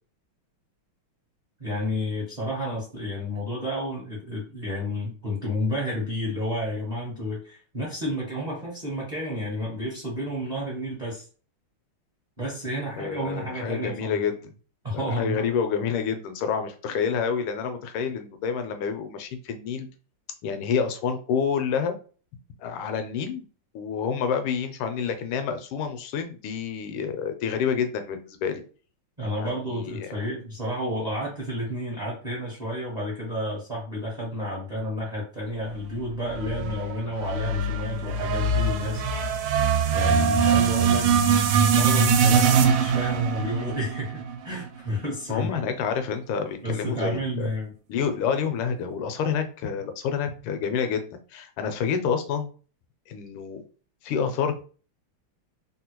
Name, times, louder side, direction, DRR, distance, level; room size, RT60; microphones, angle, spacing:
voice 1, 1.6-11.2 12.4-14.2 14.8-15.5 29.2-39.7 39.9-41.1 41.7-45.6 46.6-47.7, equal, 45° right, -5 dB, 0.5 m, -31 dB
voice 2, 13.0-14.4 14.9-19.9 20.4-21.9 22.6-23.4 23.7-28.6 29.4-30.1 45.3-47.5 47.9-51.0 51.3-52.5 53.1-53.6 54.0-54.6, left 6 dB, 85° left, 8 dB, 1.5 m, -28 dB
sound 1, 36.3-44.7, right 6 dB, 85° right, 1.4 m, -22 dB
3.6 x 2.2 x 2.9 m, 0.39 s
omnidirectional pair, 2.4 m